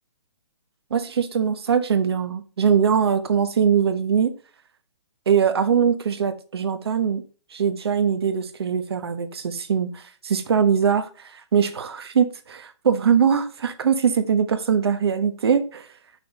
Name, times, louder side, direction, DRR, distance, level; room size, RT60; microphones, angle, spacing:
voice 1, 0.9-4.3 5.3-7.2 7.5-15.9, right 7 dB, 60° right, 1.1 m, -22 dB
7.0 x 6.1 x 4.0 m
hypercardioid pair, 170°, 15 cm